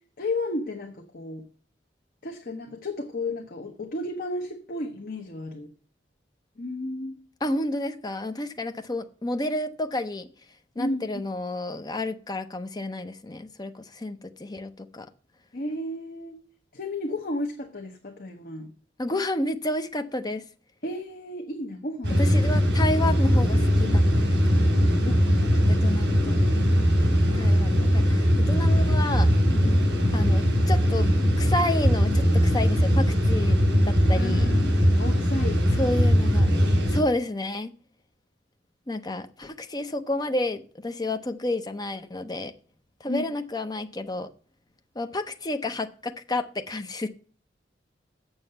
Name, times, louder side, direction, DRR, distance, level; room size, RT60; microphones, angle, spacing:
voice 1, 0.2-1.5 2.2-5.7 6.6-7.2 10.8-11.0 15.5-16.4 16.7-18.7 20.8-22.3 25.0-25.9 29.5-29.9 34.1-35.7 36.8-37.1 43.1-43.3, left 2 dB, 55° left, 3 dB, 1.0 m, -33 dB
voice 2, 7.4-10.3 10.8-15.1 19.0-20.4 22.2-24.0 24.4-24.7 25.7-26.3 27.3-29.3 30.1-31.1 31.4-33.6 33.8-34.5 35.8-36.5 36.9-37.7 38.9-42.5 43.0-44.3 44.9-47.1, left 1 dB, 20° left, 8 dB, 0.7 m, -30 dB
sound 1, 22.0-37.0, equal, 65° right, 3.6 m, -21 dB
7.3 x 6.9 x 6.7 m, 0.41 s
head